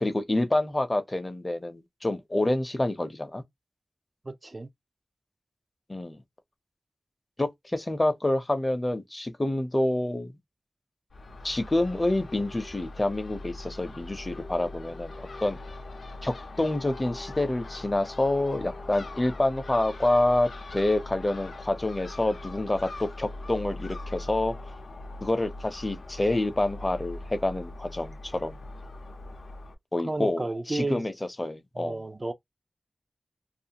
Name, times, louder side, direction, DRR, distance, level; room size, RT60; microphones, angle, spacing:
voice 1, 0.0-3.4 5.9-6.2 7.4-10.3 11.4-15.6 16.2-24.7 25.2-28.6 29.9-31.1 31.4-32.0, left 1 dB, 30° left, 0.6 m, -27 dB
voice 2, 4.3-4.7 30.0-31.1 31.8-32.3, right 2 dB, 35° right, 0.4 m, -32 dB
Crow / Gull seagull, 11.1-29.7, left 2 dB, 85° left, 0.6 m, -41 dB
2.4 x 2.4 x 2.8 m
wide cardioid pair, 85°, 0 cm